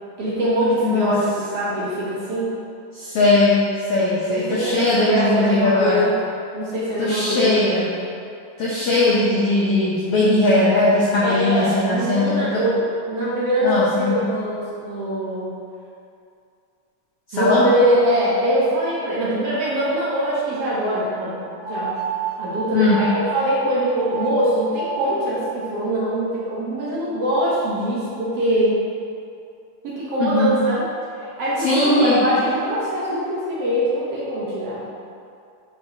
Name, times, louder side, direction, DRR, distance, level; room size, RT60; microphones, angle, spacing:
voice 1, 0.2-2.5 4.3-6.2 6.5-7.4 11.2-15.5 17.3-21.4 21.7-21.9 22.4-28.7 29.8-30.9 31.2-34.9, equal, 60° right, -8 dB, 1.8 m, -23 dB
voice 2, 0.8-1.2 2.9-3.6 3.9-6.0 7.0-7.9 8.6-12.6 13.6-14.2 17.3-17.6 22.7-23.0 30.2-30.6 31.6-32.2, left 2 dB, 70° left, -7 dB, 1.4 m, -19 dB
sound 1, 21.6-23.5 23.9-24.3 24.7-25.5, right 5 dB, 75° right, 1.1 m, -30 dB
10.5 x 4.7 x 2.9 m, 2.5 s
omnidirectional pair, 3.7 m